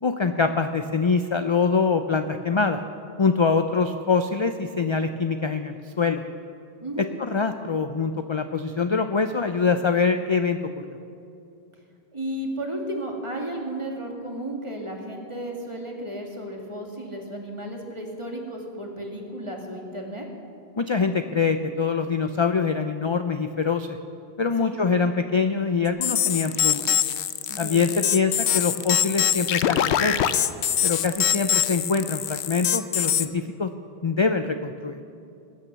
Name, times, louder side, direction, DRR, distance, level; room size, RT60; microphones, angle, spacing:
voice 1, 0.0-2.8 3.2-6.2 7.0-10.7 20.8-24.0 24.4-26.9 27.6-30.2 30.8-33.7 34.0-35.0, left 5 dB, 40° left, 8 dB, 0.4 m, -24 dB
voice 2, 6.8-7.1 12.1-20.3 24.6-24.7 27.5-27.8, right 1 dB, 30° right, 0 dB, 2.1 m, -33 dB
sound 1, 26.0-33.3, left 10 dB, 90° left, 0.9 m, -23 dB
20.5 x 9.2 x 6.9 m, 2.6 s
omnidirectional pair, 1.1 m